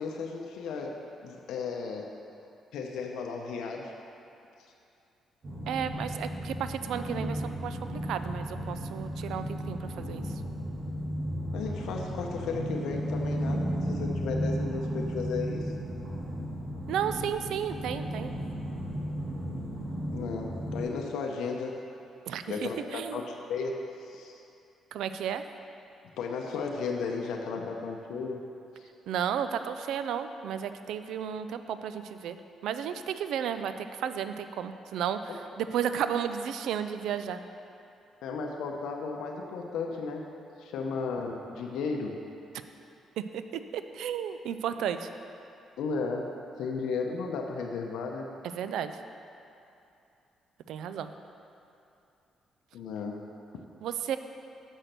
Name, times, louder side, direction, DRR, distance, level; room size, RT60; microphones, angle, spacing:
voice 1, 0.0-2.1 2.7-3.9 11.5-15.7 20.1-21.8 22.5-24.4 26.2-28.4 28.8-28.9 35.3-35.4 38.2-40.3 40.6-42.2 45.8-48.3 52.7-53.2, left 4 dB, 80° left, 1 dB, 0.6 m, -34 dB
sound 1, 5.4-20.8, equal, 45° right, 1.5 m, -34 dB
voice 2, 5.7-10.4 16.9-18.3 22.3-23.2 24.9-25.4 29.1-32.4 32.6-37.4 43.2-45.1 48.4-49.0 50.7-51.1 53.8-54.2, right 8 dB, 80° right, 10 dB, 0.4 m, -33 dB
6.3 x 5.9 x 6.5 m, 2.7 s
cardioid pair, 90°, 0 cm